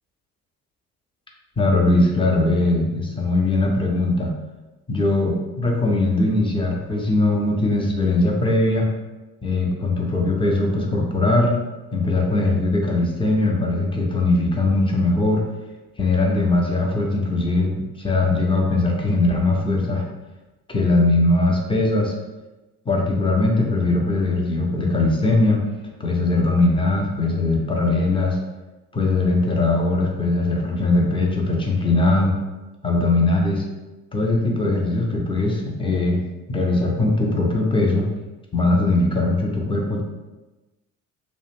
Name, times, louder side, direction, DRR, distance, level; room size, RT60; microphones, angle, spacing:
voice 1, 1.6-4.3 4.9-8.9 9.4-11.5 11.9-15.4 16.0-20.0 20.7-22.1 22.9-25.6 26.0-28.4 28.9-32.3 32.8-33.6 34.1-36.2 36.5-38.1 38.5-40.0, left 2 dB, 15° left, -1 dB, 0.5 m, -20 dB
2.4 x 2.1 x 3.0 m, 1.1 s
figure-of-eight pair, 50°, 42 cm